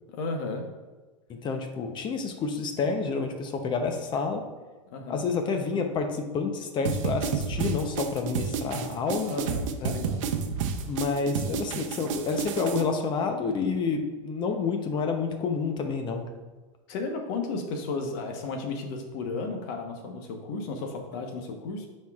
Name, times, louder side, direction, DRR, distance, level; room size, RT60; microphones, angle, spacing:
voice 1, 0.1-0.7 4.9-5.2 9.3-10.2 16.9-21.9, left 3 dB, 50° left, 3 dB, 1.1 m, -34 dB
voice 2, 1.3-4.4 5.1-9.3 9.8-9.9 10.9-16.3, left 4 dB, 25° left, 5 dB, 0.7 m, -29 dB
sound 1, 6.8-12.8, right 6 dB, 70° right, 0.7 m, -30 dB
9.2 x 4.4 x 2.4 m, 1.2 s
supercardioid pair, 130°, 17 cm